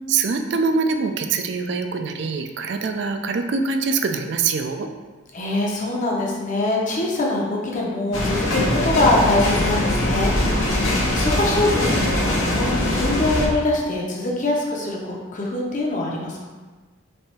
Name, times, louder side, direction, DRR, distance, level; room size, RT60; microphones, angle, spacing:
voice 1, 0.1-4.9, right 4 dB, 55° right, 7 dB, 0.3 m, -24 dB
voice 2, 5.3-16.5, left 2 dB, 35° left, -2 dB, 0.7 m, -24 dB
sound 1, 8.1-13.5, left 1 dB, 75° left, 0.8 m, -21 dB
3.4 x 3.4 x 4.2 m, 1.4 s
head